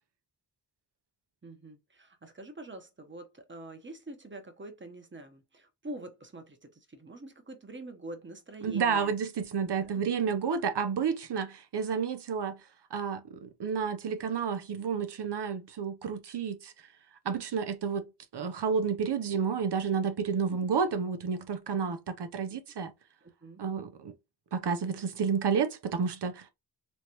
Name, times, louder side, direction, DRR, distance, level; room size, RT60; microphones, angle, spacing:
voice 1, 1.4-9.2 9.8-10.0 20.5-20.6 23.2-23.6, right 2 dB, 30° right, 1.0 m, -45 dB
voice 2, 8.6-12.6 12.9-16.7 17.2-18.1 18.3-22.9 23.6-24.1 24.5-26.5, right 6 dB, 85° right, 0.8 m, -30 dB
3.2 x 3.2 x 2.9 m
wide cardioid pair, 85°, 40 cm